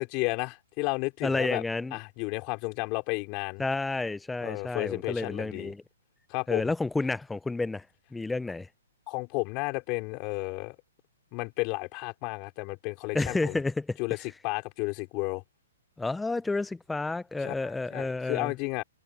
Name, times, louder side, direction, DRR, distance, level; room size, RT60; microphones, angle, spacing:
voice 1, 0.0-1.6 1.9-3.6 4.4-5.7 6.3-6.7 9.1-10.8 11.3-13.6 14.0-15.4 17.4-18.8, left 27 dB, 30° left, 4.0 m, -32 dB
voice 2, 1.2-2.0 3.6-5.8 6.5-7.8 8.1-8.7 13.1-14.0 16.0-18.5, left 3 dB, 5° left, 0.5 m, -30 dB
hypercardioid pair, 155°, 0 cm